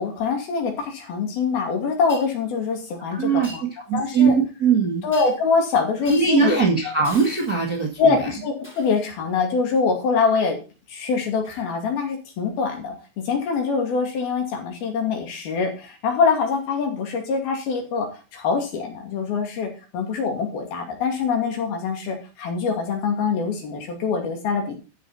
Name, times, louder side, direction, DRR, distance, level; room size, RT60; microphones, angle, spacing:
voice 1, 0.0-3.6 3.9-4.3 5.0-6.6 6.9-7.0 8.0-10.6 10.9-13.0 13.3-24.8, left 5 dB, 60° left, 3 dB, 4.0 m, -24 dB
Shatter, 2.1-2.3 3.4-3.6 5.1-5.5 6.0-6.3 7.0-7.9 8.6-9.1 11.4-11.7 12.6-12.8 13.5-13.7 16.5-16.6 17.7-17.8, left 1 dB, 5° left, 2.9 m, -41 dB
voice 2, 3.1-5.1 6.0-8.3, right 5 dB, 55° right, 1 dB, 1.0 m, -21 dB
13.0 x 7.6 x 4.2 m, 0.33 s
omnidirectional pair, 5.4 m